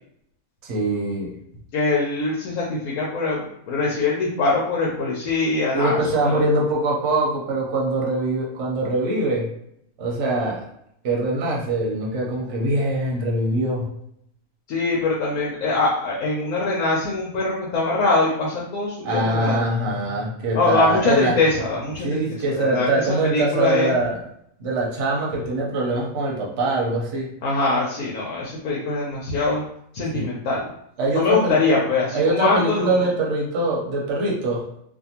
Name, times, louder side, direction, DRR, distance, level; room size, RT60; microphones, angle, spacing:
voice 1, 0.6-1.4 5.7-9.5 10.0-10.6 11.0-13.9 19.0-21.4 22.0-24.2 24.6-27.3 30.1-30.3 31.0-31.8 32.1-34.7, right 2 dB, 60° right, -2 dB, 1.0 m, -23 dB
voice 2, 1.7-6.4 14.7-19.6 20.5-22.2 22.5-22.9 23.2-24.0 27.4-29.6 29.9-30.6 31.1-32.9, left 3 dB, 80° left, -4 dB, 1.0 m, -23 dB
2.6 x 2.4 x 2.8 m, 0.72 s
omnidirectional pair, 1.5 m